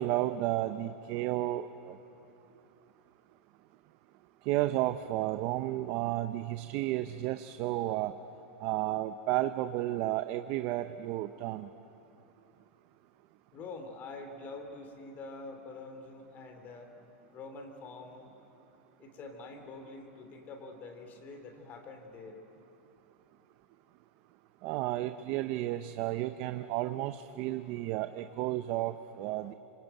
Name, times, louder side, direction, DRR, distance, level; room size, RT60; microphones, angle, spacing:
voice 1, 0.0-1.9 4.5-8.1 8.6-11.7 24.6-29.5, right 15 dB, 40° right, 10 dB, 0.7 m, -32 dB
voice 2, 13.5-16.9 17.3-18.3 19.0-22.4, left 3 dB, 25° left, 6 dB, 2.9 m, -46 dB
26.5 x 24.0 x 9.0 m, 2.9 s
supercardioid pair, 160°, 7 cm